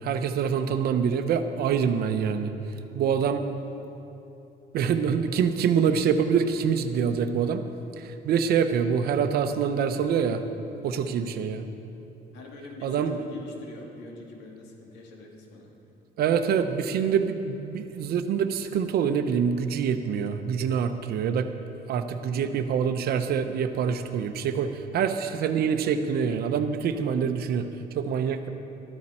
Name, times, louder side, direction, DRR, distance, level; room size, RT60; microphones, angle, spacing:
voice 1, 0.0-2.5 2.9-3.4 4.7-7.6 8.0-10.4 10.8-11.7 12.8-13.2 16.2-21.5 21.9-27.7 27.9-28.5, right 7 dB, 65° right, 8 dB, 0.9 m, -25 dB
voice 2, 12.3-15.7, left 2 dB, 85° left, 0 dB, 2.3 m, -44 dB
14.0 x 13.0 x 4.4 m, 2.9 s
cardioid pair, 110°, 17 cm